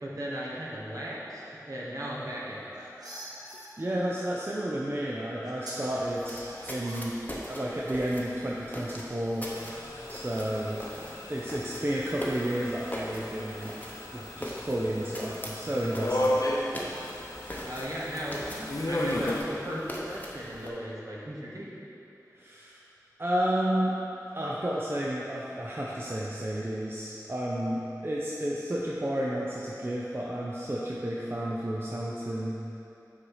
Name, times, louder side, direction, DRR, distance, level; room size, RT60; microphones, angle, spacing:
voice 1, 0.0-2.7 17.6-21.8, equal, 55° right, -6 dB, 1.2 m, -37 dB
sound 1, 2.4-3.7 4.8-4.9 5.4-5.9 6.4-7.4, right 1 dB, 80° right, 1.1 m, -44 dB
voice 2, 3.8-7.1 7.5-9.5 10.1-10.8 11.3-13.7 14.1-16.4 22.4-22.8 23.2-24.0 24.3-32.6, right 1 dB, 35° right, -5 dB, 0.6 m, -31 dB
sound 2, 5.8-20.7, equal, 25° left, 0.9 m, -42 dB
sound 3, 9.4-19.4, left 1 dB, 65° left, 0.7 m, -35 dB
6.0 x 4.1 x 4.8 m, 2.9 s
wide cardioid pair, 45°, 7 cm